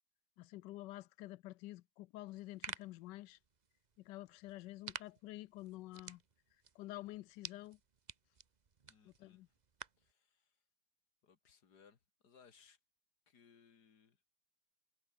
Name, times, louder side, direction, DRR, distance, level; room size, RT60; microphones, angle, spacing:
voice 1, 0.4-3.4 4.0-6.2 6.7-7.8 9.1-9.5, left 17 dB, 85° left, 1.2 m, -49 dB
sound 1, 2.3-10.1, right 5 dB, 35° right, 0.8 m, -53 dB
voice 2, 8.9-9.4 10.0-10.6 11.2-12.8 13.3-14.2, left 6 dB, 70° left, 2.5 m, -66 dB
omnidirectional pair, 1.9 m